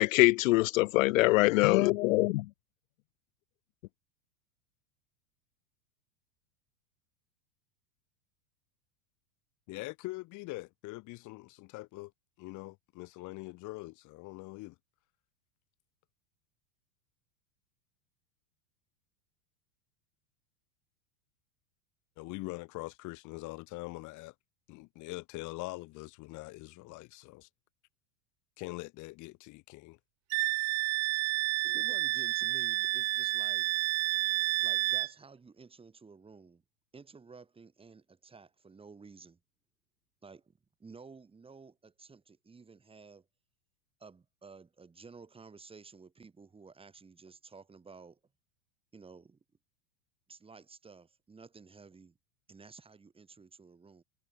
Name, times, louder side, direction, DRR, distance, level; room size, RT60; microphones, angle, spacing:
voice 1, 0.0-2.4, left 21 dB, 70° left, 0.6 m, -24 dB
voice 2, 9.7-12.1 12.4-14.8 22.2-24.3 24.7-27.5 28.6-30.0, left 22 dB, 45° left, 6.9 m, -43 dB
Wind instrument woodwind instrument, 30.3-35.1, right 20 dB, 40° right, 1.4 m, -30 dB
voice 3, 31.6-33.7 34.6-36.6 36.9-39.4 40.2-43.3 44.0-48.2 48.9-49.4 50.3-52.2 52.5-54.0, right 4 dB, 15° right, 7.3 m, -53 dB
supercardioid pair, 135°, 41 cm